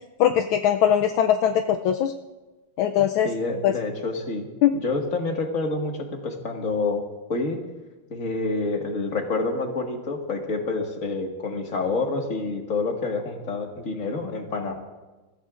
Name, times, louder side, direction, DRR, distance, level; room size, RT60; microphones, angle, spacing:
voice 1, 0.2-2.1 2.8-3.3 3.6-3.7 4.6-4.7, left 10 dB, 75° left, 6 dB, 1.4 m, -20 dB
voice 2, 3.2-7.0 7.3-7.6 8.1-14.8, left 3 dB, 40° left, 1 dB, 2.1 m, -28 dB
29.0 x 15.5 x 2.5 m, 1.1 s
omnidirectional pair, 2.4 m